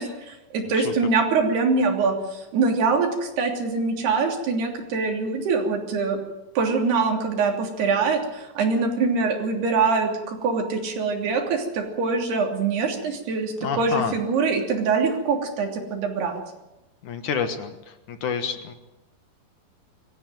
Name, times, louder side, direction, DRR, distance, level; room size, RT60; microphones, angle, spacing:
voice 1, 0.0-6.2 6.6-16.4, right 4 dB, 70° right, 3 dB, 5.1 m, -24 dB
voice 2, 13.6-14.1 17.0-17.7 18.1-18.7, left 6 dB, 60° left, 8 dB, 2.3 m, -28 dB
23.5 x 15.0 x 9.1 m, 0.99 s
omnidirectional pair, 4.9 m